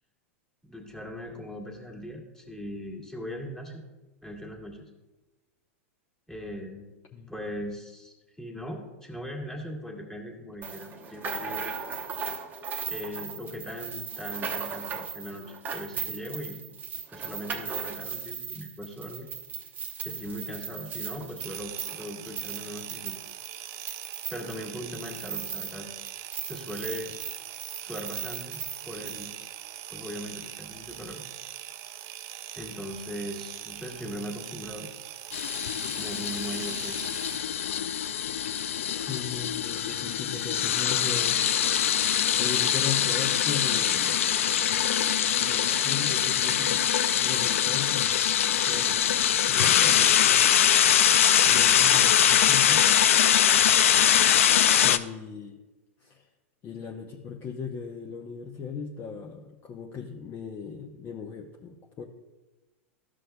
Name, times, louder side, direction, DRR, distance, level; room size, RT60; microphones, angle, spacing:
voice 1, 0.6-3.8 4.2-4.8 6.3-6.9 7.3-11.7 12.9-16.6 17.1-19.3 20.0-23.2 24.3-25.9 26.5-27.1 27.8-28.6 28.8-29.3 29.9-31.2 32.5-34.9 35.9-37.1, equal, 10° left, -1 dB, 1.7 m, -39 dB
sound 1, 10.6-25.8 26.1-29.3, right 7 dB, 25° right, 0.9 m, -37 dB
sound 2, 21.4-37.4, right 12 dB, 40° right, 0.5 m, -42 dB
sound 3, 35.3-55.0, left 9 dB, 80° left, 0.4 m, -23 dB
voice 2, 39.1-41.4 42.4-44.2 45.4-48.2 48.6-48.9 49.5-50.6 50.8-50.9 51.5-52.8 54.8-55.6 56.0-56.3 56.6-62.0, left 6 dB, 30° left, 1 dB, 0.7 m, -37 dB
13.0 x 6.2 x 2.3 m, 1.1 s
hypercardioid pair, 120°, 7 cm